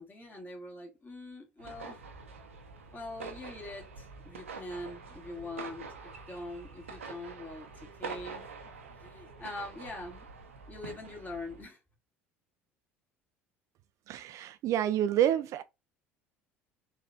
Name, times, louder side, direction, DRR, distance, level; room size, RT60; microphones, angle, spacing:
voice 1, 0.0-2.0 2.9-8.5 9.0-10.3 10.7-11.8, left 2 dB, 25° left, 1.9 m, -43 dB
sound 1, 1.6-11.6, right 4 dB, 85° right, 0.7 m, -46 dB
voice 2, 14.1-15.6, right 11 dB, 50° right, 0.4 m, -28 dB
4.0 x 3.3 x 2.6 m
hypercardioid pair, 65°, 7 cm